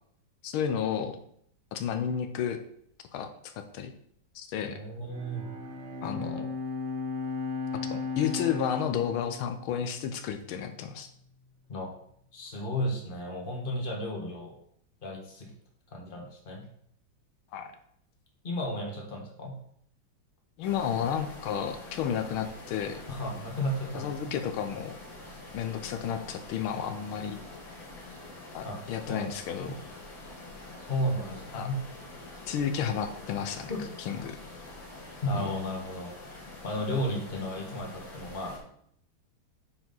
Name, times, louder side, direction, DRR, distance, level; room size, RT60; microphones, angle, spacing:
voice 1, 0.4-1.2 1.7-2.6 3.1-3.9 4.3-4.8 6.0-6.5 7.7-11.1 17.5-17.7 20.6-23.0 23.9-25.0 25.5-27.4 28.5-29.7 31.5-31.7 32.5-33.7 34.1-34.4 35.3-35.5, left 8 dB, 85° left, 8 dB, 1.5 m, -32 dB
voice 2, 4.6-5.4 11.7-11.9 12.3-14.5 15.0-15.5 15.9-16.6 18.4-19.6 23.1-24.3 28.6-28.8 29.1-29.3 29.6-29.7 30.8-31.8 33.7-33.8 35.2-36.1 36.6-38.6, equal, 25° left, 0 dB, 1.6 m, -33 dB
Bowed string instrument, 5.1-10.6, left 4 dB, 90° right, 0.6 m, -36 dB
sound 1, 20.6-38.6, left 2 dB, 70° left, 2.5 m, -46 dB
9.6 x 4.8 x 3.9 m, 0.68 s
omnidirectional pair, 2.3 m